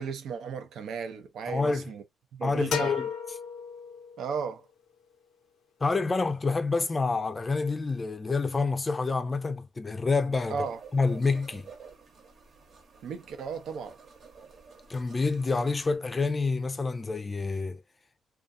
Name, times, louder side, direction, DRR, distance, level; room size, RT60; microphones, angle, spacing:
voice 1, 0.0-2.0 2.3-2.9 4.2-4.6 10.5-10.8 13.0-14.0, right 6 dB, 75° right, 0.6 m, -35 dB
voice 2, 1.5-1.9 2.4-3.1 5.8-10.6 10.9-11.7 14.9-17.8, left 4 dB, 25° left, 0.5 m, -28 dB
sound 1, 2.7-4.5, left 7 dB, 75° left, 0.5 m, -34 dB
sound 2, 10.6-16.0, right 6 dB, 55° right, 1.0 m, -51 dB
2.5 x 2.4 x 2.6 m
cardioid pair, 90°, 0 cm